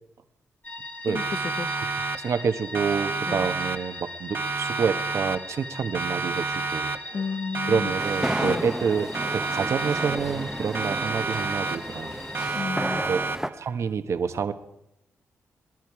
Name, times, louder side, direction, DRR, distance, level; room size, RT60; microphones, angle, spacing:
sound 1, 0.6-12.5, left 2 dB, 30° left, 2.3 m, -40 dB
voice 1, 1.1-1.7 3.2-3.5 7.1-7.9 8.3-8.7 12.5-13.0, left 5 dB, 50° left, 0.7 m, -32 dB
Siren, 1.1-2.5 2.7-4.1 4.3-5.7 5.9-7.3 7.5-8.9 9.1-10.5 10.7-12.1 12.3-13.7, right 4 dB, 45° right, 0.9 m, -30 dB
voice 2, 2.2-6.9 7.7-12.1 13.1-13.2 13.6-14.5, right 6 dB, 65° right, 1.2 m, -28 dB
sound 2, 8.0-13.5, right 1 dB, 5° right, 0.9 m, -33 dB
23.0 x 11.0 x 4.8 m
cardioid pair, 60°, 5 cm